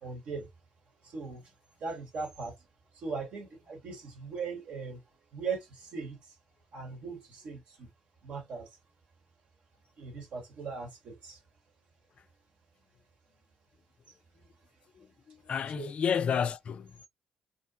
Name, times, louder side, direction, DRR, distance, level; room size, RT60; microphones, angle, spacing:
voice 1, 0.0-0.5 1.0-1.5 1.8-2.6 2.9-5.0 5.3-6.3 6.7-7.9 8.2-8.7 10.0-11.4 15.7-15.9, right 4 dB, 65° right, 1.2 m, -39 dB
voice 2, 15.0-17.1, left 7 dB, 55° left, 0.3 m, -31 dB
2.6 x 2.1 x 2.7 m
hypercardioid pair, 45°, 2 cm